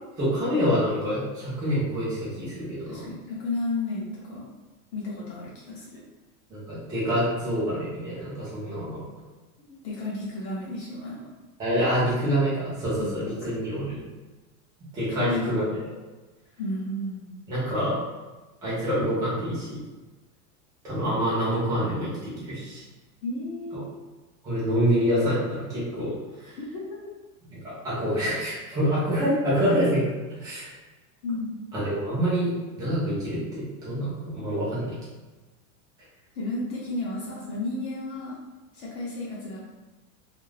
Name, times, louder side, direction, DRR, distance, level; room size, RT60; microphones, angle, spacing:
voice 1, 0.2-3.1 6.5-9.0 11.6-14.0 14.9-15.7 17.5-18.0 18.6-19.8 20.8-22.8 24.4-26.1 26.4-26.5 27.5-27.6 27.8-30.1 30.4-30.7 31.7-34.9, equal, 10° right, -10 dB, 0.5 m, -26 dB
voice 2, 2.9-4.5 4.9-6.0 9.8-11.3 13.0-13.6 15.1-15.5 16.6-17.3 23.2-23.8 26.6-27.1 31.2-31.7 36.3-38.4 38.7-39.6, left 2 dB, 50° left, -6 dB, 0.7 m, -33 dB
2.4 x 2.0 x 3.1 m, 1.2 s
supercardioid pair, 160°, 45 cm